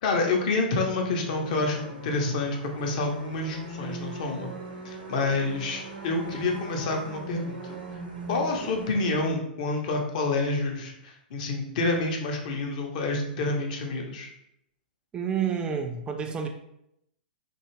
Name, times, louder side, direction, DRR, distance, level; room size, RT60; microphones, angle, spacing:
voice 1, 0.0-4.5 4.8-7.8 8.3-14.3, left 3 dB, 50° left, 2 dB, 0.7 m, -28 dB
sound 1, 1.2-9.3, right 2 dB, 85° right, 0.8 m, -40 dB
voice 2, 15.1-16.5, right 7 dB, 15° right, 4 dB, 0.3 m, -29 dB
2.6 x 2.3 x 3.0 m, 0.79 s
figure-of-eight pair, 110°, 5 cm